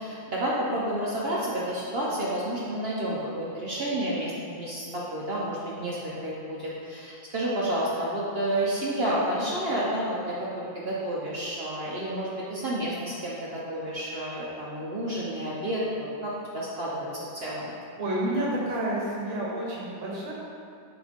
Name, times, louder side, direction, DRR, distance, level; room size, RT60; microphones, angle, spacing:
voice 1, 0.0-17.7, right 1 dB, 55° right, -6 dB, 0.6 m, -30 dB
voice 2, 18.0-20.3, right 1 dB, 85° right, -4 dB, 2.1 m, -29 dB
7.4 x 4.1 x 3.6 m, 2.3 s
omnidirectional pair, 2.2 m